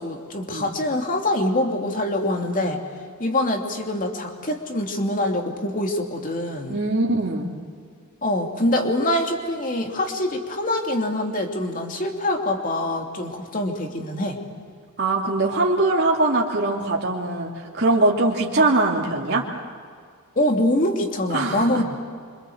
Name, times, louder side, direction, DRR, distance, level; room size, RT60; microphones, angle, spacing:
voice 1, 0.0-2.8 3.2-6.8 8.2-14.4 20.4-21.8, left 1 dB, 40° left, 3 dB, 2.9 m, -24 dB
voice 2, 6.7-7.5 15.0-19.4 21.3-21.8, right 2 dB, 50° right, -3 dB, 2.9 m, -22 dB
26.5 x 26.0 x 8.0 m, 2.1 s
head